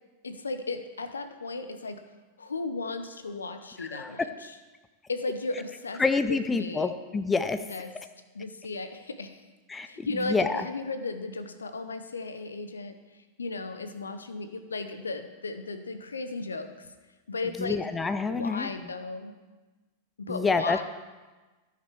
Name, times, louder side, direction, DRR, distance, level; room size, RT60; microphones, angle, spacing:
voice 1, 0.2-2.0 2.4-4.6 5.1-6.0 6.3-6.9 7.7-8.0 8.3-9.4 9.8-13.0 13.4-16.9 17.3-17.8 18.3-19.3 20.2-20.8, left 3 dB, 75° left, 9 dB, 0.7 m, -35 dB
voice 2, 3.8-4.1 6.0-7.6 9.7-10.6 17.6-18.7 20.3-20.8, left 4 dB, 15° left, 11 dB, 0.5 m, -27 dB
13.5 x 6.0 x 4.7 m, 1.2 s
figure-of-eight pair, 90°, 0 cm